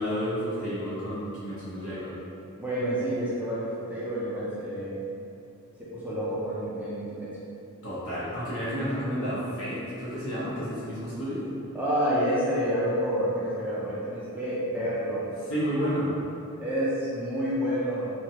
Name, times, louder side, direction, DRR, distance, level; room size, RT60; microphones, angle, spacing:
voice 1, 0.0-2.1 7.8-11.4 15.5-16.1, equal, 65° left, -10 dB, 1.0 m, -31 dB
voice 2, 2.6-5.0 5.8-7.4 11.7-15.3 16.6-18.1, equal, 5° right, -9 dB, 0.4 m, -29 dB
3.2 x 2.2 x 2.7 m, 2.6 s
head